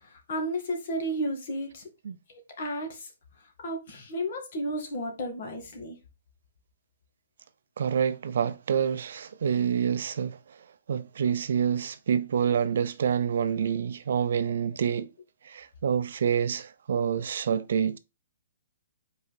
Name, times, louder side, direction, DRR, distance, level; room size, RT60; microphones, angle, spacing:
voice 1, 0.0-1.9 2.3-3.1 3.6-6.0, equal, 40° left, 1.8 m, -33 dB
voice 2, 7.8-15.1 15.4-18.0, right 8 dB, 55° right, 0.5 m, -27 dB
5.5 x 4.2 x 4.1 m
hypercardioid pair, 180°, 0 cm